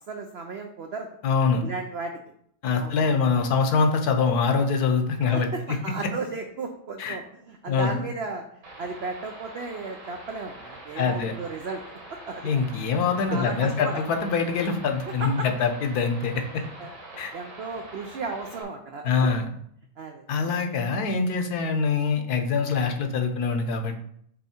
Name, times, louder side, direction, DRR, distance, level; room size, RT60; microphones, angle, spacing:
voice 1, 0.0-1.1 1.6-2.1 2.8-3.0 5.2-11.8 12.1-12.5 13.3-14.0 15.2-15.5 16.8-16.9 17.3-19.3 20.0-20.3, right 4 dB, 85° right, 4 dB, 0.5 m, -35 dB
voice 2, 1.2-1.6 2.6-5.5 7.0-7.2 7.7-8.0 10.9-11.3 12.4-16.6 17.2-17.3 19.0-19.5 20.3-24.0, left 5 dB, 65° left, 5 dB, 1.3 m, -24 dB
old radio noise, 8.6-18.6, right 2 dB, 60° right, 1.9 m, -44 dB
7.1 x 3.6 x 4.3 m, 0.68 s
omnidirectional pair, 1.8 m